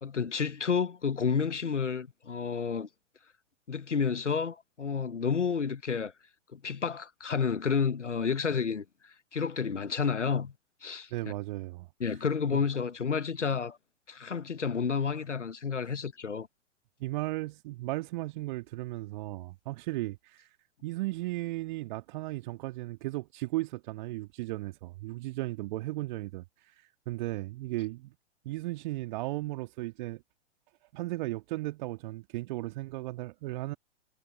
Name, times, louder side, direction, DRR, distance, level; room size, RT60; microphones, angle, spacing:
voice 1, 0.0-2.9 3.7-6.1 6.5-10.5 10.8-11.3 12.0-13.8 14.1-16.5, left 6 dB, 80° left, 1.0 m, -30 dB
voice 2, 11.1-11.9 12.5-12.6 17.0-20.5 20.8-28.1 28.4-30.2 30.9-33.8, right 19 dB, 40° right, 2.2 m, -36 dB
figure-of-eight pair, 110°, 35 cm